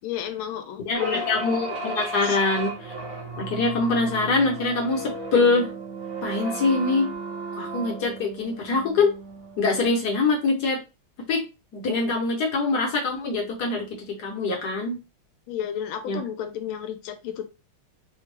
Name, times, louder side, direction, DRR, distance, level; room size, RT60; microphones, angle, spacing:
voice 1, 0.0-1.3 2.2-2.4 15.5-17.4, left 9 dB, 80° left, 7 dB, 1.4 m, -32 dB
voice 2, 0.8-2.9 3.4-5.7 6.2-7.1 7.6-9.1 9.6-10.8 11.3-11.4 11.7-13.9 14.2-15.0 16.1-16.2, left 3 dB, 60° left, 0 dB, 1.2 m, -24 dB
sound 1, 0.9-9.7, right 2 dB, 30° right, 1.0 m, -35 dB
3.5 x 2.3 x 3.2 m, 0.29 s
omnidirectional pair, 2.3 m